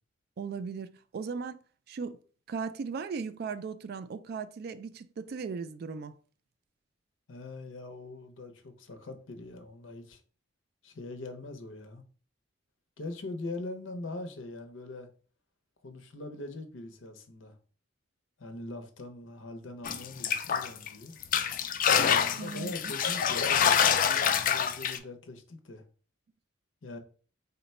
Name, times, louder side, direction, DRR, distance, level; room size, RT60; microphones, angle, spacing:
voice 1, 0.4-1.6 1.9-2.2 2.5-6.2 22.4-22.9, right 5 dB, 55° right, 0.3 m, -37 dB
voice 2, 7.3-10.2 10.8-12.0 13.0-15.1 15.8-17.6 18.4-21.2 22.3-25.8 26.8-27.0, left 2 dB, 85° left, 0.7 m, -42 dB
sound 1, 19.8-20.9 21.2-25.0, left 8 dB, 45° left, 0.3 m, -26 dB
3.9 x 2.2 x 4.1 m
head